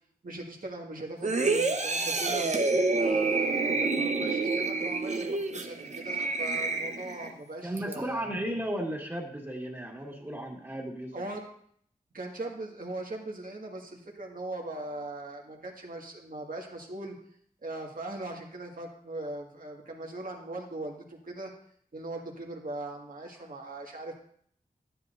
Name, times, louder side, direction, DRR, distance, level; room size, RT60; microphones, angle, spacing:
voice 1, 0.2-2.5 2.9-8.3 11.1-11.4 12.1-17.2 17.6-21.5 21.9-24.2, right 2 dB, 65° right, 0 dB, 1.9 m, -39 dB
sound 1, 1.2-7.3 7.8-7.9, right 3 dB, 50° right, 0.9 m, -28 dB
voice 2, 7.6-11.1, right 1 dB, 15° right, -2 dB, 1.9 m, -34 dB
12.0 x 10.0 x 2.6 m, 0.63 s
wide cardioid pair, 80°, 16 cm